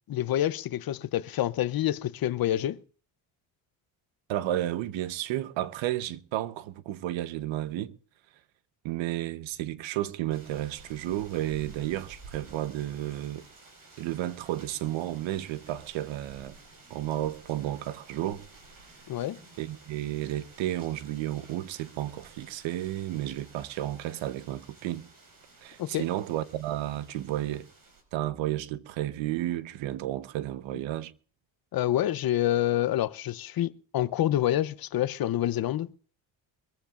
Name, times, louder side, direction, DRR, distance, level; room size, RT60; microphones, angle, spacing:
voice 1, 0.1-2.8 19.1-19.4 25.8-26.0 31.7-35.9, left 12 dB, 50° left, 0.7 m, -27 dB
voice 2, 4.3-7.9 8.8-13.5 14.0-16.5 16.9-18.4 19.6-25.1 25.6-27.7 28.1-31.1, right 13 dB, 85° right, 1.0 m, -32 dB
sound 1, 10.3-28.0, right 3 dB, 45° right, 5.2 m, -53 dB
23.5 x 14.5 x 2.5 m
cardioid pair, 105°, 45 cm